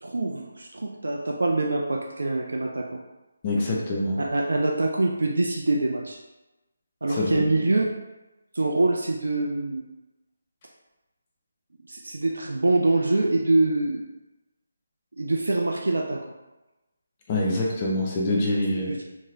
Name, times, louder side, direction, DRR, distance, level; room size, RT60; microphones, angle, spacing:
voice 1, 0.0-3.0 4.2-6.2 7.0-7.8 8.5-9.8 11.9-14.0 15.2-16.3 18.8-19.0, right 2 dB, 60° right, 1 dB, 0.3 m, -25 dB
voice 2, 3.4-4.2 7.1-7.4 17.3-18.9, left 1 dB, 25° left, -2 dB, 0.6 m, -25 dB
2.9 x 2.8 x 2.6 m, 1.0 s
figure-of-eight pair, 150°, 0 cm